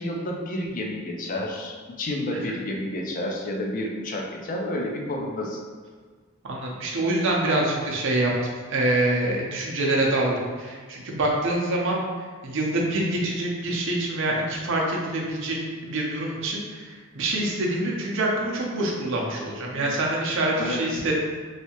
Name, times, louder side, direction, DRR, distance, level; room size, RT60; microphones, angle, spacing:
voice 1, 0.0-5.6 19.7-20.0 20.6-21.1, left 1 dB, 40° left, 0 dB, 0.4 m, -30 dB
voice 2, 6.4-8.3 8.7-12.0 12.4-16.9 17.1-21.1, right 1 dB, 60° right, -2 dB, 0.6 m, -25 dB
3.2 x 2.7 x 2.9 m, 1.5 s
head